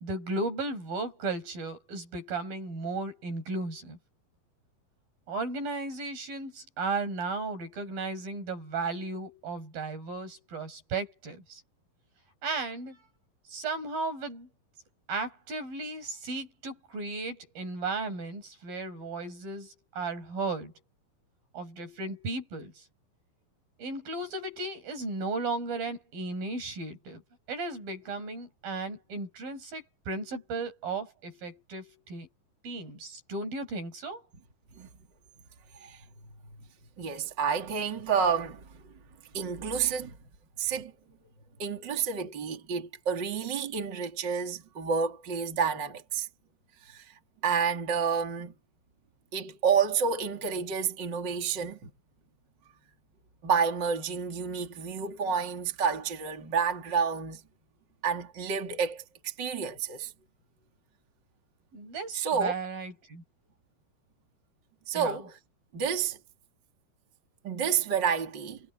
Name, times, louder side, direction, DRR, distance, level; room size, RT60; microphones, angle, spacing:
voice 1, 0.0-4.0 5.3-11.6 12.4-13.0 13.5-14.5 15.1-20.7 21.5-22.9 23.8-27.2 27.5-32.3 32.6-34.3 61.7-63.2 64.9-65.2, right 3 dB, 70° right, 9.1 m, -35 dB
voice 2, 37.0-38.7 39.3-40.2 40.6-40.9 41.6-46.3 46.8-48.5 49.3-51.9 53.4-57.4 58.0-60.1 62.1-62.5 64.9-65.4 65.7-66.2 67.4-68.6, right 6 dB, 30° right, 3.5 m, -29 dB
omnidirectional pair, 4.3 m